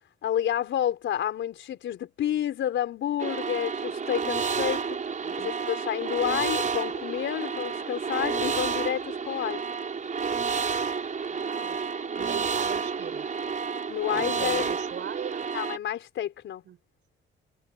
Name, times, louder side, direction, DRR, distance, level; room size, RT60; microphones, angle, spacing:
voice 1, 0.2-4.8 5.4-9.6 13.9-14.7 15.5-16.6, left 10 dB, 70° left, 4.5 m, -29 dB
sound 1, 3.2-15.8, right 5 dB, 40° right, 5.5 m, -30 dB
voice 2, 5.2-5.6 11.3-11.8 12.1-13.3 14.1-15.5 16.6-16.8, right 10 dB, 65° right, 4.9 m, -39 dB
cardioid pair, 90°, 20 cm